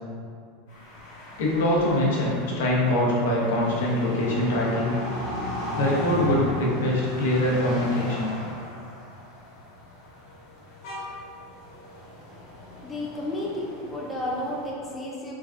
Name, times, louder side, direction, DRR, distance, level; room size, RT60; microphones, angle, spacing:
sound 1, 0.7-14.7, left 1 dB, 60° left, 1.1 m, -37 dB
voice 1, 1.4-5.0 5.7-8.3, left 1 dB, 80° left, -4 dB, 0.6 m, -23 dB
voice 2, 12.8-15.3, left 1 dB, 10° left, -4 dB, 0.3 m, -32 dB
3.3 x 2.3 x 2.2 m, 2.3 s
supercardioid pair, 160°, 0 cm